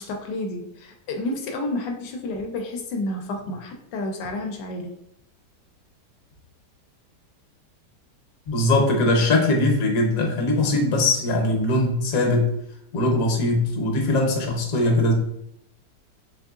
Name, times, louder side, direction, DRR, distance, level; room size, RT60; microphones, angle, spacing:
voice 1, 0.0-4.9, left 2 dB, 85° left, 3 dB, 1.2 m, -30 dB
voice 2, 8.5-12.5 12.9-15.1, left 2 dB, 60° left, 2 dB, 1.2 m, -21 dB
3.9 x 3.6 x 2.4 m, 0.76 s
omnidirectional pair, 1.8 m